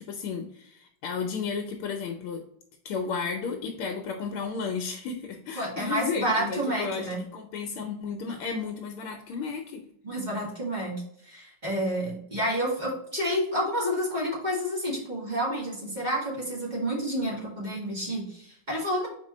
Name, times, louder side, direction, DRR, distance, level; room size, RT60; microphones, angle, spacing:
voice 1, 0.0-2.4 2.8-9.8, left 5 dB, 75° left, 4 dB, 1.6 m, -33 dB
voice 2, 5.6-7.2 10.0-10.9 11.2-19.1, equal, 20° right, -4 dB, 2.0 m, -29 dB
4.5 x 4.4 x 5.3 m, 0.71 s
omnidirectional pair, 2.4 m